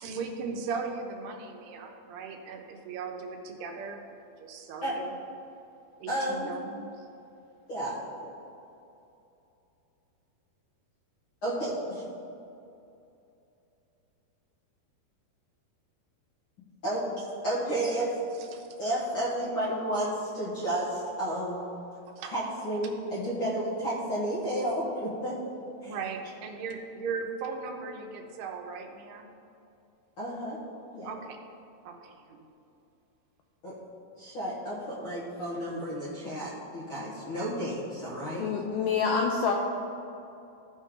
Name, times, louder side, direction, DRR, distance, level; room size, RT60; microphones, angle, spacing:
voice 1, 0.0-4.0 4.4-5.1 6.0-7.1 18.4-18.8 22.2-22.3 25.9-29.3 31.0-31.4 31.9-32.5, right 5 dB, 85° right, 3 dB, 2.9 m, -38 dB
voice 2, 6.1-6.5 7.7-8.3 11.4-12.0 16.8-17.1 17.4-18.1 18.8-21.6 22.3-25.4 25.8-25.9 30.2-30.6 30.9-31.1 33.6-33.8 34.2-38.5, right 1 dB, 55° left, -8 dB, 1.5 m, -32 dB
voice 3, 38.4-39.5, left 5 dB, 85° left, 1 dB, 1.9 m, -26 dB
15.0 x 5.4 x 3.7 m, 2.8 s
omnidirectional pair, 4.5 m